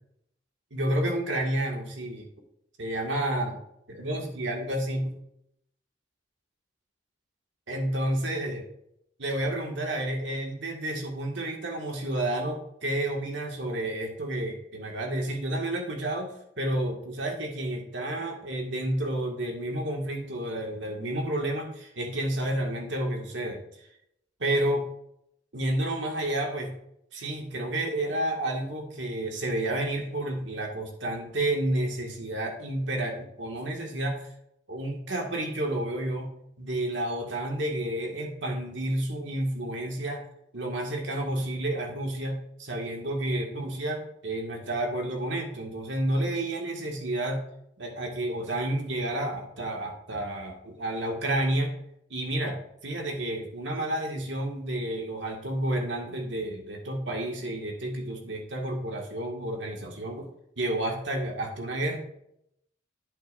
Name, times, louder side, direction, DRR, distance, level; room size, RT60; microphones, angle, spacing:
voice 1, 0.7-2.3 2.8-3.6 3.9-5.1 7.7-8.6 9.2-23.6 24.4-24.9 25.5-26.7 27.1-34.3 34.7-36.3 36.6-40.2 40.5-47.4 47.8-51.7 52.1-60.3 60.6-62.0, right 1 dB, 80° right, 1 dB, 1.9 m, -30 dB
10.5 x 8.5 x 2.6 m, 0.76 s
head